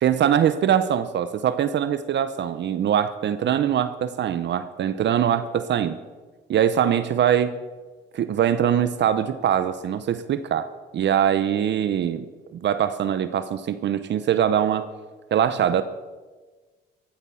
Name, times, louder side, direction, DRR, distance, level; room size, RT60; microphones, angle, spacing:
voice 1, 0.0-6.0 6.5-7.6 8.1-10.7 10.9-12.2 12.5-14.9 15.3-15.8, right 9 dB, 65° right, 12 dB, 0.8 m, -22 dB
15.5 x 13.5 x 5.7 m, 1.3 s
cardioid pair, 90°, 20 cm